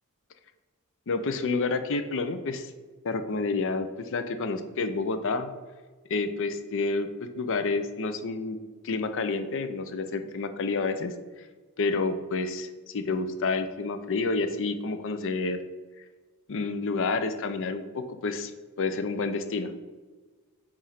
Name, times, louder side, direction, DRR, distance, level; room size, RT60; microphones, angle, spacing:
voice 1, 1.1-2.7 3.0-5.5 6.1-8.6 8.8-11.1 11.8-15.6 16.5-18.5 18.8-19.7, left 3 dB, 60° left, 9 dB, 0.5 m, -29 dB
7.4 x 2.6 x 5.6 m, 1.3 s
head